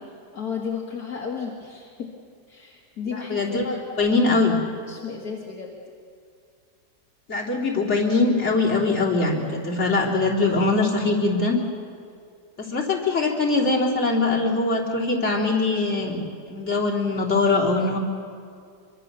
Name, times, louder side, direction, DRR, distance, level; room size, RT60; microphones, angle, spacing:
voice 1, 0.3-2.1 2.5-3.9 4.9-5.7, left 6 dB, 60° left, -1 dB, 2.3 m, -33 dB
voice 2, 3.1-3.7 4.0-4.6 7.3-11.6 12.6-18.0, left 3 dB, 40° left, -3 dB, 3.6 m, -22 dB
25.5 x 23.5 x 6.8 m, 2.3 s
omnidirectional pair, 1.8 m